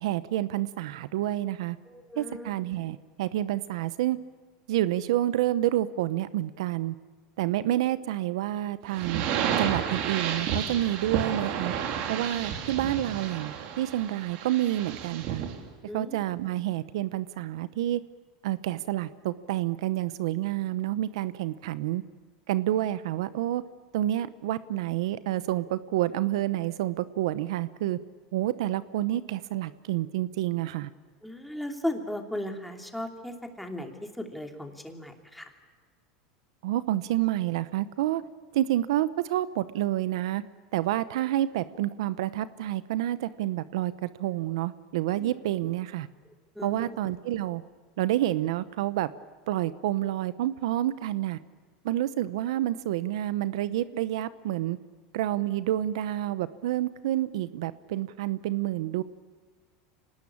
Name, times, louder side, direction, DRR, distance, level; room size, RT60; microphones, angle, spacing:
voice 1, 0.0-1.8 2.2-4.2 4.7-7.0 7.4-9.2 9.6-11.7 12.1-15.4 15.9-18.0 18.4-22.0 22.5-23.6 23.9-28.0 28.3-30.9 36.6-38.2 38.5-40.4 40.7-46.1 46.6-47.6 48.0-49.1 49.5-51.4 51.8-54.8 55.1-59.0, right 14 dB, 80° right, 15 dB, 0.8 m, -28 dB
voice 2, 1.9-2.8 15.9-16.2 31.2-35.5 45.1-45.3 46.5-47.0, left 1 dB, ahead, 3 dB, 2.8 m, -37 dB
sound 1, 8.9-15.6, right 8 dB, 60° right, 3.2 m, -31 dB
25.5 x 19.0 x 8.7 m, 1.6 s
supercardioid pair, 125°, 3 cm